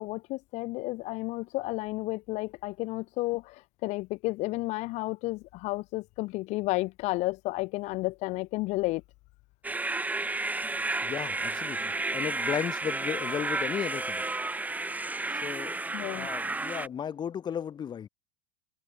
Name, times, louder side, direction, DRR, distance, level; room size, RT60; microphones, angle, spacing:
voice 1, 0.0-9.0 15.9-16.3, left 21 dB, 45° left, 2.0 m, -32 dB
sound 1, 9.6-16.9, right 3 dB, 10° right, 7.7 m, -32 dB
voice 2, 11.0-14.2 15.3-18.1, left 8 dB, 30° left, 6.4 m, -35 dB
figure-of-eight pair, 85°, 16 cm